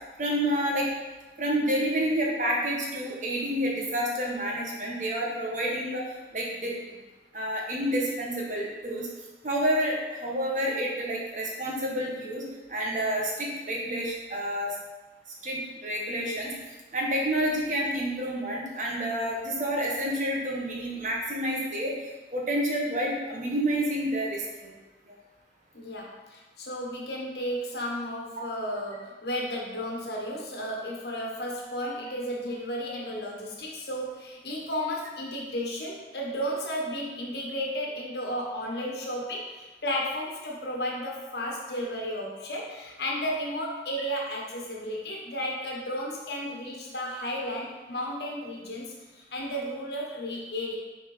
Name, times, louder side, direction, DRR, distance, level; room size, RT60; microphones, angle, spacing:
voice 1, 0.2-0.9 1.4-6.0 6.3-6.7 7.3-9.1 9.4-12.4 12.7-14.7 15.4-16.5 16.9-21.9 22.3-24.7, equal, 45° right, -3 dB, 1.4 m, -29 dB
voice 2, 25.7-50.8, equal, 70° left, -2 dB, 1.4 m, -33 dB
6.6 x 4.5 x 5.0 m, 1.2 s
head